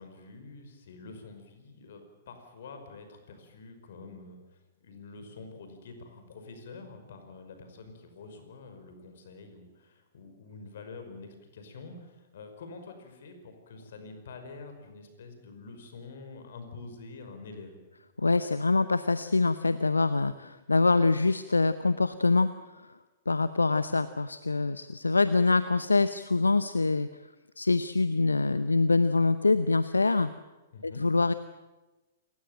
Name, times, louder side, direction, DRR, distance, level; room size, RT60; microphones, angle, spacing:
voice 1, 0.0-4.4 4.8-17.8 30.7-31.0, left 3 dB, 60° left, 7 dB, 5.3 m, -47 dB
voice 2, 18.2-22.5 23.3-27.1 27.6-30.3 30.8-31.3, left 3 dB, 85° left, 13 dB, 0.7 m, -25 dB
28.0 x 16.0 x 9.1 m, 1.1 s
figure-of-eight pair, 105°, 0 cm